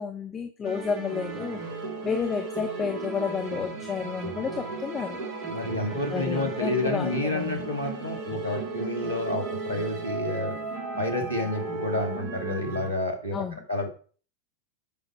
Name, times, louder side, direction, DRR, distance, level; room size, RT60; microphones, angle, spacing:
voice 1, 0.0-1.6 2.0-5.3 6.1-7.7 13.3-13.6, left 6 dB, 20° left, 5 dB, 0.8 m, -31 dB
sound 1, 0.6-12.9, right 3 dB, 35° right, 1.7 m, -36 dB
sound 2, 1.0-12.2, right 4 dB, 65° right, 2.1 m, -41 dB
voice 2, 5.5-10.6 11.0-13.4 13.7-13.9, left 1 dB, 85° left, 2 dB, 1.9 m, -29 dB
8.3 x 5.5 x 4.4 m, 0.42 s
figure-of-eight pair, 90°, 0 cm